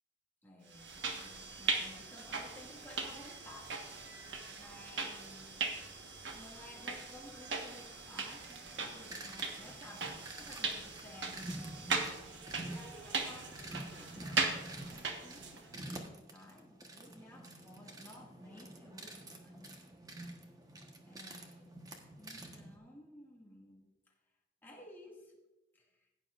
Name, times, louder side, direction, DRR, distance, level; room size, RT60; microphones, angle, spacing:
voice 1, 0.4-4.0 4.5-5.6 6.3-19.7 21.1-21.7 22.2-23.9 24.6-25.3 25.8-26.1, left 1 dB, 10° left, -3 dB, 2.0 m, -55 dB
sound 1, 0.7-15.7, right 4 dB, 80° right, 1.4 m, -39 dB
sound 2, 8.4-22.8, right 1 dB, 20° right, 1.2 m, -49 dB
16.5 x 9.2 x 2.5 m, 1.0 s
head